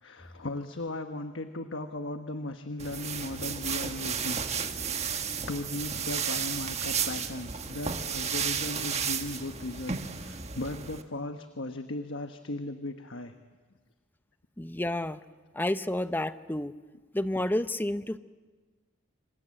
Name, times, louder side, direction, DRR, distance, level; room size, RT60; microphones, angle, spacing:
voice 1, 0.0-4.4 5.0-13.3, left 2 dB, 75° left, 7 dB, 1.2 m, -37 dB
sound 1, 2.8-11.0, right 6 dB, 35° right, 1.5 m, -33 dB
voice 2, 14.6-15.2 15.6-16.7 17.1-18.2, left 1 dB, 10° left, 12 dB, 0.7 m, -30 dB
27.0 x 26.5 x 7.7 m, 1.4 s
head